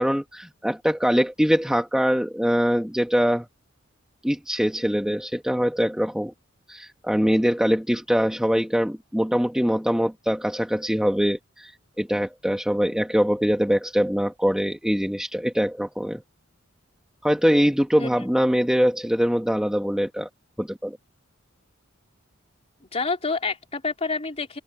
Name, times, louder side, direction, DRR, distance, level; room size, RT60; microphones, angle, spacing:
voice 1, 0.0-3.5 4.2-6.3 6.7-11.7 12.0-16.2 17.2-20.3 20.6-21.0, equal, 5° right, 1.0 m, -23 dB
voice 2, 22.9-24.6, left 4 dB, 30° left, 3.5 m, -28 dB
head